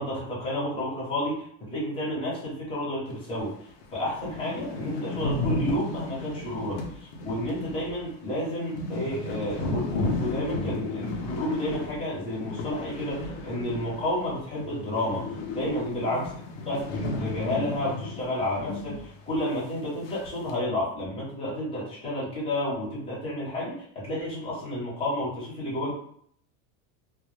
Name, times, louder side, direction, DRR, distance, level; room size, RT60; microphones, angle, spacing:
voice 1, 0.0-3.5 3.9-16.3 16.5-25.9, left 1 dB, 10° left, -7 dB, 0.7 m, -31 dB
sound 1, 3.4-3.5 3.8-3.9 4.1-14.3 14.6-19.1 19.3-19.4 20.1-20.5, left 2 dB, 50° left, 0.5 m, -34 dB
2.1 x 2.1 x 3.1 m, 0.63 s
cardioid pair, 175°, 46 cm